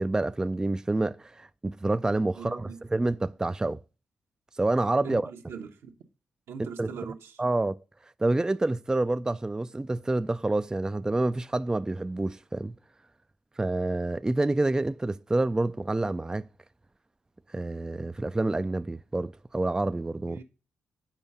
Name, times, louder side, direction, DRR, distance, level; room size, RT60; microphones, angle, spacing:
voice 1, 0.0-3.8 4.6-5.3 6.8-6.9 7.4-7.8 8.2-12.7 13.6-16.4 17.5-20.4, right 2 dB, 15° right, 0.3 m, -28 dB
voice 2, 2.4-2.8 5.0-6.0 6.5-7.4 20.3-20.4, right 6 dB, 75° right, 1.1 m, -41 dB
7.3 x 4.6 x 5.5 m
supercardioid pair, 55°, 5 cm